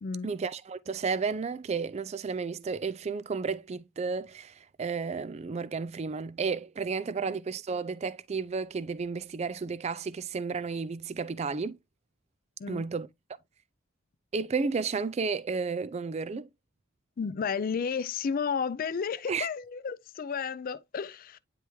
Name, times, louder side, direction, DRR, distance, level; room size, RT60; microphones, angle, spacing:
voice 1, 0.2-11.8 12.7-13.1 14.3-16.5 19.3-19.5, right 5 dB, 30° right, 0.3 m, -32 dB
voice 2, 17.2-21.4, left 6 dB, 45° left, 0.3 m, -32 dB
9.3 x 3.4 x 3.0 m
head